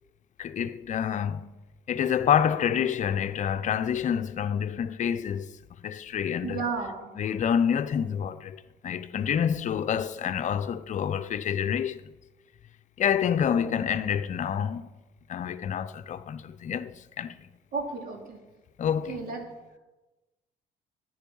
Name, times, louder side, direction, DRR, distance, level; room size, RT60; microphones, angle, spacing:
voice 1, 0.4-1.5 1.9-5.5 5.8-6.6 7.2-12.0 13.0-14.9 15.3-16.9 17.2-17.4 18.8-19.2, left 8 dB, 45° left, 0.7 m, -27 dB
voice 2, 6.4-7.1 13.6-13.9 17.7-18.4 19.1-19.4, right 4 dB, 60° right, 3.1 m, -33 dB
13.5 x 9.3 x 5.5 m
cardioid pair, 110°, 17 cm